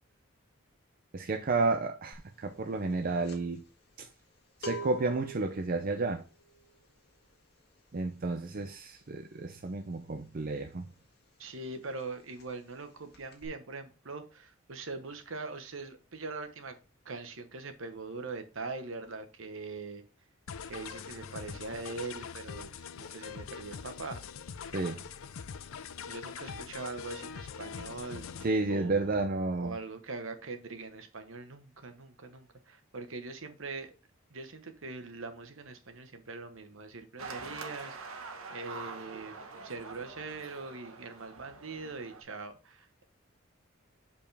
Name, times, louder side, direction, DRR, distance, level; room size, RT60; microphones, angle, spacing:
voice 1, 1.1-3.6 4.0-4.1 4.6-6.2 7.9-10.9 24.7-25.0 28.4-29.8, right 3 dB, 45° right, 0.5 m, -31 dB
sound 1, 2.1-2.4 2.6-11.2 11.5-11.7 12.0-12.8 13.1-13.5, right 1 dB, 50° left, 1.7 m, -47 dB
voice 2, 11.4-16.8 17.0-20.0 20.6-24.2 26.1-28.2 28.7-29.2 29.6-33.9 34.3-43.0, right 3 dB, 65° right, 1.1 m, -42 dB
sound 2, 20.5-28.5, left 6 dB, 75° left, 0.5 m, -43 dB
sound 3, 37.2-42.2, right 4 dB, 90° right, 1.1 m, -45 dB
6.8 x 5.2 x 3.4 m
head